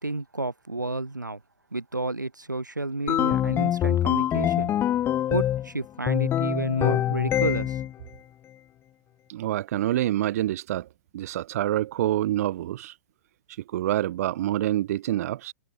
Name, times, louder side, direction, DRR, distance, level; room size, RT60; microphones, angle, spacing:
voice 1, 0.0-1.4 1.7-4.7 5.3-7.8, right 2 dB, 90° right, 3.5 m, -31 dB
sound 1, 3.1-5.7 6.1-7.9, left 11 dB, 25° left, 1.1 m, -24 dB
voice 2, 9.3-10.9 11.1-13.0 13.5-15.5, right 13 dB, 55° right, 1.4 m, -27 dB
figure-of-eight pair, 105°, 10 cm